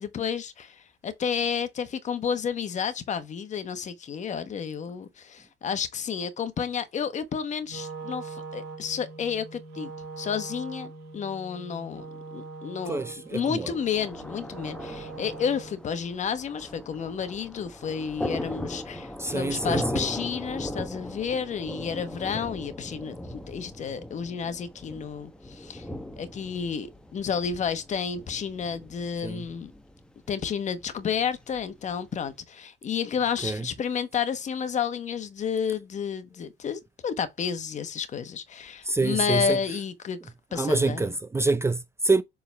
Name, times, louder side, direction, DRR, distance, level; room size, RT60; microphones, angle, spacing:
voice 1, 0.0-9.9 10.2-12.1 12.3-13.0 13.3-25.9 26.2-29.7 30.3-41.1, left 7 dB, 45° left, 1.2 m, -31 dB
Wind instrument woodwind instrument, 7.6-15.9, right 4 dB, 75° right, 2.0 m, -42 dB
voice 2, 12.9-13.7 19.2-20.0 29.2-29.4 33.4-33.7 38.8-39.6 40.5-42.2, right 3 dB, 15° right, 0.5 m, -26 dB
Thunder, 13.4-32.4, left 1 dB, 5° left, 0.9 m, -39 dB
7.3 x 3.8 x 3.3 m
cardioid pair, 110°, 17 cm